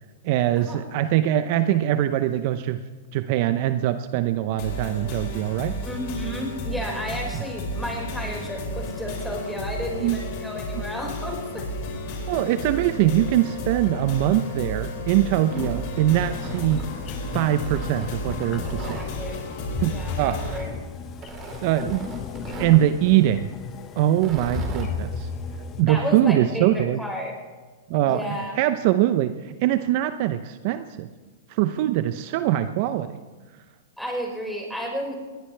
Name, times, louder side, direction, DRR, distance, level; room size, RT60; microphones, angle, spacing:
voice 1, 0.2-2.8 3.1-5.7 9.9-10.2 12.3-16.8 17.3-19.0 19.8-20.6 21.6-22.1 22.6-23.5 24.0-25.3 25.8-27.0 27.9-28.2 28.6-31.1 31.5-33.2, right 13 dB, 50° right, 10 dB, 0.7 m, -22 dB
sound 1, 4.6-20.6, left 1 dB, 50° left, 4.9 m, -33 dB
voice 2, 5.9-11.7 15.5-15.7 16.0-16.1 18.7-19.5 19.9-20.7 25.9-27.3 28.1-28.5 34.0-35.2, left 1 dB, ahead, -2 dB, 5.4 m, -32 dB
Tearing, 15.4-17.1 17.6-19.1 20.2-20.7 21.2-22.8 24.1-24.9, right 1 dB, 30° right, 3.9 m, -38 dB
sound 2, 16.1-25.8, left 6 dB, 30° left, 1.1 m, -36 dB
21.0 x 17.5 x 3.4 m, 1.3 s
hypercardioid pair, 125°, 0 cm